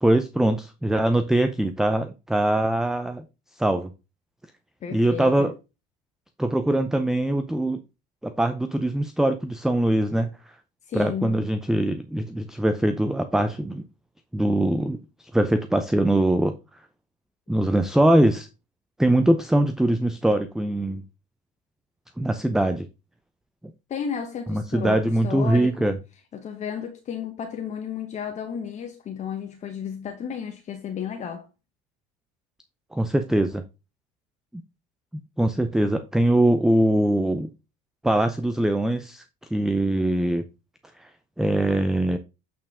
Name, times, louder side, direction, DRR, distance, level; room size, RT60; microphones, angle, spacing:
voice 1, 0.0-3.2 3.6-3.9 4.9-5.5 6.4-7.8 8.2-10.3 10.9-13.8 14.3-15.0 15.3-16.6 17.5-18.5 19.0-21.0 22.2-22.9 24.5-25.9 32.9-33.6 35.4-37.5 38.0-39.2 39.5-40.4 41.0-41.1 41.4-42.2, right 1 dB, 5° right, 0.5 m, -22 dB
voice 2, 4.8-5.5 10.9-11.5 23.9-26.0 26.3-31.4, left 7 dB, 35° left, 1.1 m, -33 dB
8.3 x 4.5 x 3.6 m
supercardioid pair, 115°, 19 cm